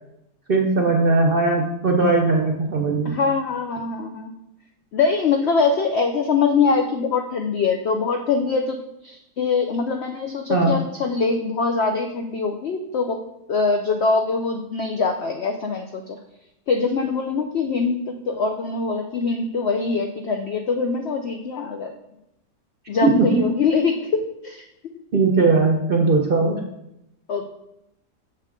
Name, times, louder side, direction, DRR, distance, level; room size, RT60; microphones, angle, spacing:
voice 1, 0.5-3.2 10.5-10.8 23.0-23.4 25.1-26.6, right 3 dB, 50° right, 2 dB, 0.7 m, -19 dB
voice 2, 3.0-4.3 4.9-8.8 9.0-13.2 13.5-16.2 16.7-21.9 22.9-24.6 27.3-27.5, left 4 dB, 85° left, 5 dB, 0.5 m, -23 dB
6.7 x 6.2 x 3.6 m, 0.85 s
omnidirectional pair, 1.8 m